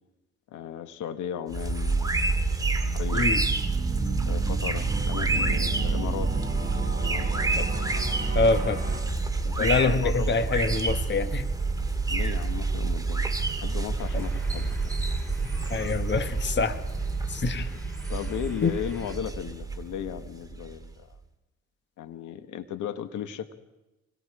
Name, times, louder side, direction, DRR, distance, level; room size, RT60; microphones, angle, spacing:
voice 1, 0.5-2.2 2.8-3.3 4.3-6.3 7.0-7.3 9.4-10.4 12.1-15.0 17.5-17.8 18.1-21.2 22.0-23.5, left 9 dB, 80° left, 9 dB, 1.5 m, -36 dB
sound 1, 1.5-20.9, right 3 dB, 10° right, 2.1 m, -28 dB
sound 2, 2.1-9.0, right 4 dB, 30° right, 5.9 m, -34 dB
voice 2, 3.1-3.4 7.6-7.7 8.3-8.8 9.6-11.5 15.7-16.8 17.3-17.7 18.6-18.8, left 4 dB, 35° left, 9 dB, 1.4 m, -25 dB
sound 3, 14.0-19.2, equal, 5° left, 7.3 m, -52 dB
27.0 x 20.0 x 4.9 m, 1.0 s
cardioid pair, 90°, 30 cm